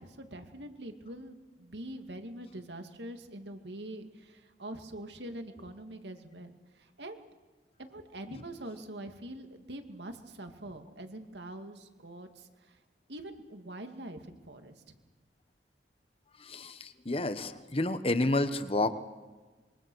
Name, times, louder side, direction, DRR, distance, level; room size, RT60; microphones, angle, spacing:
voice 1, 0.0-7.2 7.8-12.8 13.1-14.9, right 1 dB, 75° right, 6 dB, 2.4 m, -44 dB
voice 2, 16.4-18.9, left 2 dB, 35° left, 11 dB, 1.2 m, -30 dB
26.0 x 23.5 x 6.4 m, 1.3 s
head